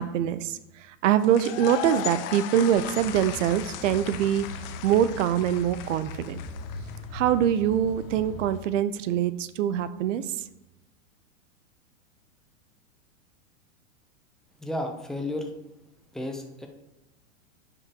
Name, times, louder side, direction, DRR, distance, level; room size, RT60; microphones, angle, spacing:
voice 1, 0.0-4.5 4.8-6.4 7.1-10.2, right 10 dB, 65° right, 14 dB, 0.6 m, -24 dB
sound 1, 1.2-7.2, left 11 dB, 45° left, 0.7 m, -37 dB
sound 2, 2.7-8.4, left 2 dB, 80° left, 1.7 m, -40 dB
voice 2, 14.6-15.5 16.1-16.7, left 1 dB, ahead, 3 dB, 0.4 m, -32 dB
9.4 x 5.4 x 2.8 m, 0.95 s
hypercardioid pair, 130°, 41 cm